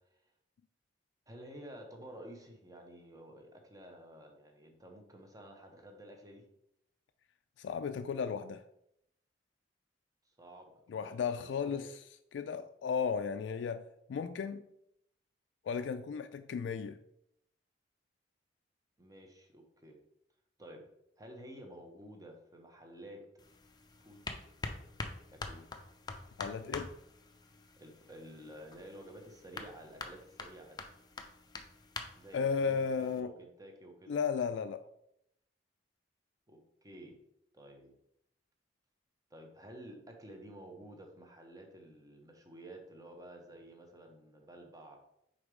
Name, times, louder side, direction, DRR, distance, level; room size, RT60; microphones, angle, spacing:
voice 1, 1.3-6.5 10.2-11.9 19.0-20.0 20.6-20.9 21.2-23.3 24.0-24.5 25.3-25.6 27.8-30.8 32.2-34.2 36.5-37.2 37.5-37.9 39.3-45.0, right 1 dB, 20° right, 1.0 m, -52 dB
voice 2, 7.6-8.6 10.9-12.0 12.3-13.8 14.1-14.7 15.6-17.0 26.4-26.9 32.3-33.3 34.1-34.8, left 6 dB, 80° left, 0.3 m, -34 dB
sound 1, 23.4-33.2, left 3 dB, 25° left, 0.5 m, -46 dB
5.2 x 3.9 x 4.8 m
head